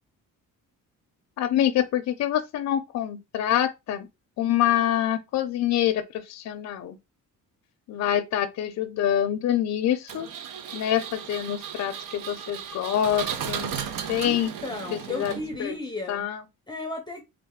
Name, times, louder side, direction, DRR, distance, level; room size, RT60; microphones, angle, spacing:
voice 1, 1.4-4.1 4.4-7.0 7.9-10.3 10.7-13.7 14.1-14.5 14.9-15.3 15.6-15.7 16.1-16.4, left 11 dB, 60° left, 0.5 m, -26 dB
Engine, 10.1-15.8, right 8 dB, 80° right, 0.7 m, -35 dB
voice 2, 14.2-16.3 16.7-17.2, left 2 dB, 15° left, 0.6 m, -34 dB
3.6 x 3.2 x 3.5 m
cardioid pair, 175°, 31 cm